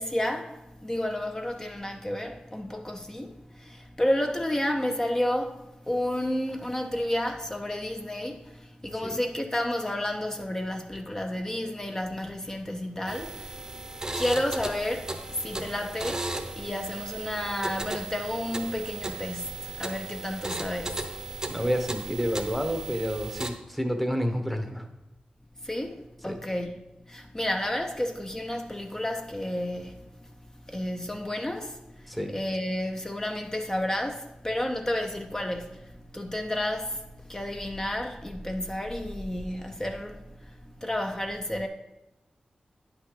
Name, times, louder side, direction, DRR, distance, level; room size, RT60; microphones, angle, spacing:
voice 1, 0.0-13.8 14.1-16.3 16.6-21.2 25.6-30.3 30.7-41.7, left 1 dB, 20° left, 0.6 m, -31 dB
sound 1, 13.1-23.5, right 2 dB, 20° right, 0.8 m, -36 dB
voice 2, 21.5-24.9 26.3-26.4 32.1-32.3, equal, 5° left, 1.0 m, -29 dB
9.3 x 5.9 x 3.8 m
wide cardioid pair, 85°, 3 cm